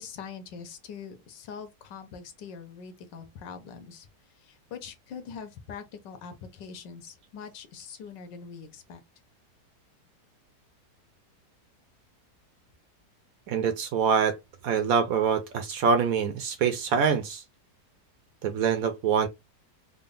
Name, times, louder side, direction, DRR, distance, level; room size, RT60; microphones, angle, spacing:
voice 1, 0.0-4.1 4.4-9.0, left 6 dB, 90° left, 1.5 m, -43 dB
voice 2, 13.5-14.4 14.6-17.4 18.4-19.3, right 6 dB, 70° right, 0.9 m, -25 dB
3.8 x 2.0 x 3.8 m
omnidirectional pair, 1.8 m